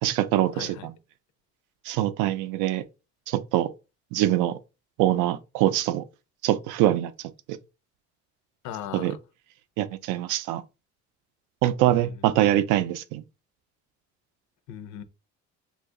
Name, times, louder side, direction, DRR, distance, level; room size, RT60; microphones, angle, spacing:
voice 1, 0.0-0.9 1.9-2.8 3.3-3.7 4.1-4.6 5.0-6.0 6.4-7.1 8.9-9.1 9.8-10.6 11.6-13.2, right 13 dB, 90° right, 0.5 m, -24 dB
voice 2, 0.5-0.9 8.6-9.2 11.9-12.2 14.7-15.0, left 10 dB, 70° left, 0.5 m, -38 dB
2.7 x 2.4 x 3.6 m
cardioid pair, 165°, 30 cm